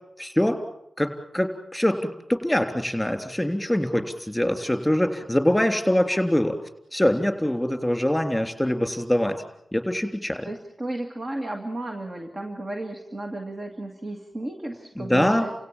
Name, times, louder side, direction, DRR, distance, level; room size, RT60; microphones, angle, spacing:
voice 1, 0.2-0.6 1.0-2.0 2.3-6.6 6.9-9.4 9.7-10.5 15.0-15.5, left 1 dB, 5° left, 7 dB, 3.4 m, -23 dB
voice 2, 10.4-15.5, right 1 dB, 40° right, 4 dB, 2.2 m, -33 dB
29.5 x 16.5 x 7.4 m, 0.78 s
cardioid pair, 45°, 0 cm